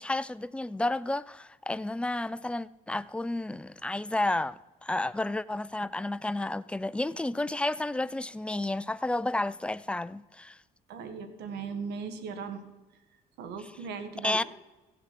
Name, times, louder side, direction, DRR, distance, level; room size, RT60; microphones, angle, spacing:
voice 1, 0.0-10.6 14.2-14.4, left 2 dB, 5° left, 0.3 m, -31 dB
voice 2, 10.9-12.6 13.4-14.4, right 5 dB, 80° right, 1.6 m, -38 dB
15.5 x 5.9 x 7.6 m
cardioid pair, 110°, 17 cm